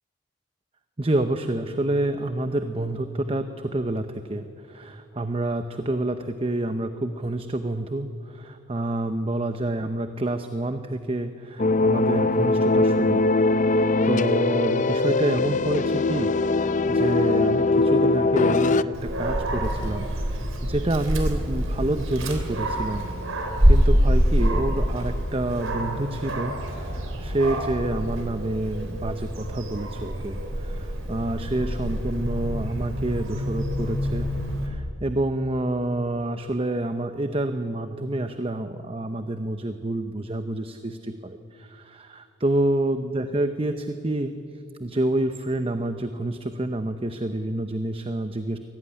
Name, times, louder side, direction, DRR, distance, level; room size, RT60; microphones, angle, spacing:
voice 1, 1.0-13.2 14.0-34.3 34.6-44.3 44.8-48.6, right 1 dB, 30° right, 8 dB, 0.7 m, -28 dB
sound 1, 11.6-18.8, left 3 dB, 40° left, 0.5 m, -21 dB
Dog, 18.9-34.7, equal, 85° right, 3.5 m, -26 dB
23.5 x 17.0 x 9.8 m, 2.7 s
head